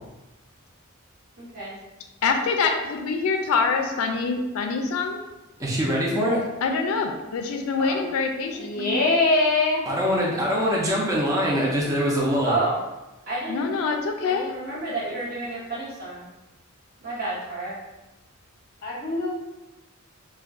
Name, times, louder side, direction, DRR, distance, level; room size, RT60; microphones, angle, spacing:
voice 1, 1.4-1.8 7.8-8.0 8.9-9.0 10.5-10.6 12.4-12.8 13.3-13.6 14.2-16.2 17.0-17.8, right 2 dB, 45° right, -8 dB, 0.9 m, -30 dB
voice 2, 2.2-5.2 6.6-9.0 13.5-14.5, left 4 dB, 70° left, 5 dB, 0.3 m, -25 dB
voice 3, 5.6-6.4 9.9-12.5, equal, 15° right, -4 dB, 0.5 m, -23 dB
voice 4, 8.6-9.8 18.8-19.3, left 2 dB, 40° left, -2 dB, 0.7 m, -22 dB
2.4 x 2.2 x 3.5 m, 1.0 s
head